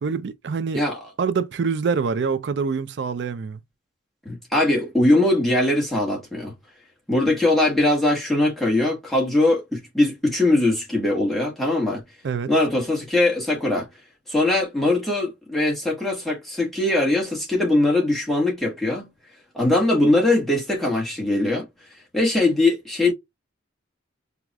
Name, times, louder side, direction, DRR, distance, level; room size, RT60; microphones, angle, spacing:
voice 1, 0.0-0.8 1.2-3.6 12.2-12.5, right 5 dB, 65° right, 0.4 m, -25 dB
voice 2, 4.2-6.5 7.1-12.0 12.5-13.9 14.3-19.1 19.5-21.7 22.1-23.1, left 2 dB, ahead, 1.3 m, -21 dB
4.7 x 2.3 x 2.3 m
head